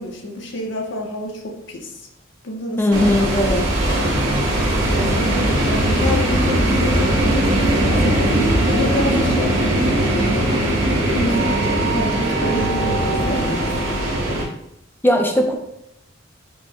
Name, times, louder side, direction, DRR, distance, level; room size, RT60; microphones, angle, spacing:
voice 1, 0.0-2.1 2.4-4.5 4.9-10.7 11.1-13.7, left 1 dB, 65° left, 1 dB, 0.7 m, -28 dB
voice 2, 2.8-3.6 15.0-15.5, left 1 dB, 10° left, 3 dB, 0.4 m, -17 dB
sound 1, 2.9-14.4, right 1 dB, 80° right, 1.0 m, -19 dB
5.1 x 2.1 x 3.5 m, 0.82 s
head